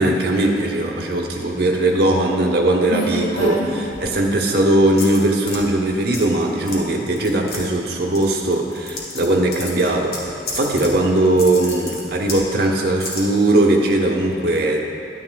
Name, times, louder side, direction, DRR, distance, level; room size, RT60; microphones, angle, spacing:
voice 1, 0.0-14.8, right 1 dB, 60° right, 0 dB, 1.0 m, -19 dB
sound 1, 2.9-4.2 5.0-5.6 6.1-6.4 6.7-6.8 7.1-7.6 8.1-9.3 9.5-10.9 11.2-12.4 13.0-13.2, left 1 dB, 60° left, 1.7 m, -28 dB
11.0 x 9.5 x 2.3 m, 2.5 s
head